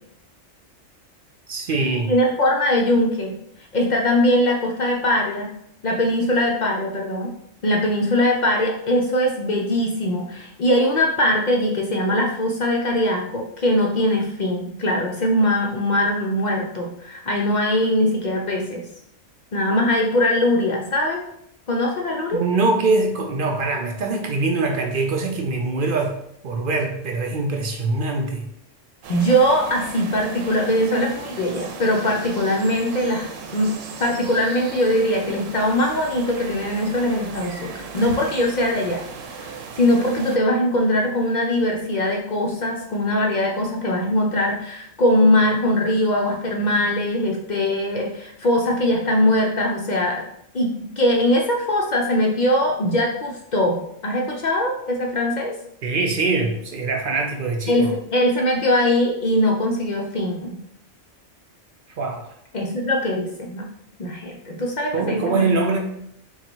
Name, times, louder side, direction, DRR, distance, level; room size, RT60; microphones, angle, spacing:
voice 1, 1.5-2.1 22.3-26.2 26.4-28.5 55.8-57.9 61.9-62.3 64.9-65.8, right 3 dB, 60° right, 2 dB, 0.6 m, -23 dB
voice 2, 2.1-3.3 3.7-5.5 5.8-7.3 7.6-18.8 19.5-21.2 21.7-22.4 29.1-33.7 34.0-39.0 39.4-50.2 50.5-55.5 57.7-60.6 62.5-63.6 64.0-65.4, left 1 dB, 50° left, 0 dB, 0.5 m, -21 dB
sound 1, 29.0-40.4, right 5 dB, 90° right, 1.0 m, -37 dB
3.9 x 2.4 x 4.3 m, 0.74 s
omnidirectional pair, 1.3 m